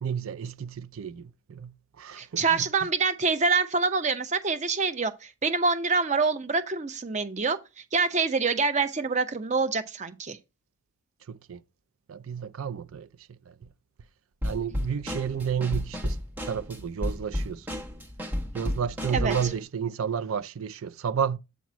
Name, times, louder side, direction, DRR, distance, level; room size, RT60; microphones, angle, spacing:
voice 1, 0.0-1.7 2.0-2.6 11.3-11.6 12.1-13.5 14.4-16.2 16.5-17.7 18.5-21.4, right 7 dB, 85° right, 0.4 m, -31 dB
voice 2, 2.2-7.6 7.9-10.4 19.1-19.3, right 4 dB, 35° right, 0.6 m, -26 dB
Drum kit / Snare drum, 14.4-19.6, left 1 dB, 10° right, 1.3 m, -32 dB
8.2 x 3.0 x 6.0 m
head